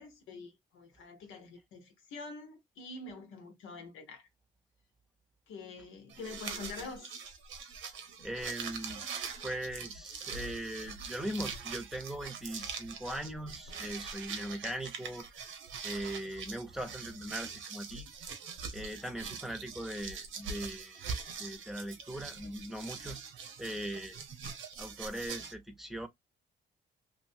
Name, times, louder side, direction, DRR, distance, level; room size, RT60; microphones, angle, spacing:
voice 1, 0.0-4.3 5.5-7.4, left 3 dB, 90° left, 1.2 m, -46 dB
sound 1, 6.1-25.5, right 6 dB, 80° right, 0.8 m, -43 dB
voice 2, 8.2-9.1 9.4-15.3 15.8-18.1 18.7-21.1 21.4-23.2 23.6-24.2 24.8-26.1, right 1 dB, ahead, 0.8 m, -40 dB
2.9 x 2.6 x 2.7 m
cardioid pair, 90°, 20 cm